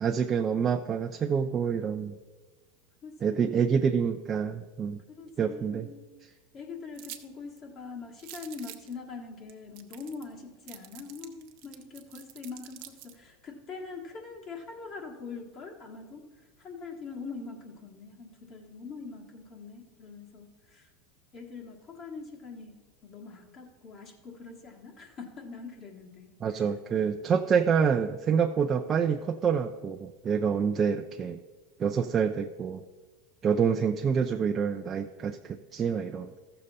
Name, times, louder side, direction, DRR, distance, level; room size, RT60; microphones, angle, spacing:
voice 1, 0.0-2.1 3.2-5.0 5.4-5.9 26.4-31.4 31.8-32.8 33.4-36.3, right 6 dB, 30° right, 5 dB, 0.5 m, -27 dB
voice 2, 3.0-3.9 5.1-6.1 6.5-20.9 21.3-26.8, left 4 dB, 40° left, 1 dB, 1.4 m, -43 dB
sound 1, 7.0-7.2 7.6-7.7 8.2-8.9 9.5-9.6 9.8-10.3 10.7-13.2, right 13 dB, 60° right, 0.8 m, -46 dB
14.0 x 6.6 x 4.1 m, 1.3 s
hypercardioid pair, 110°, 0 cm